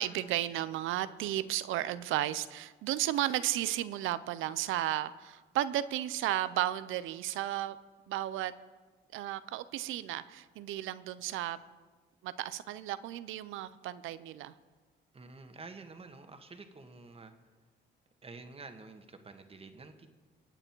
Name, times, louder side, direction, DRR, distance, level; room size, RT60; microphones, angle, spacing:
voice 1, 0.0-7.8 8.1-8.5 9.1-11.6 12.2-14.5, right 13 dB, 90° right, 15 dB, 0.6 m, -34 dB
voice 2, 15.1-17.3 18.2-20.1, right 3 dB, 30° right, 7 dB, 1.5 m, -49 dB
23.5 x 9.0 x 4.6 m, 1.4 s
cardioid pair, 90°, 20 cm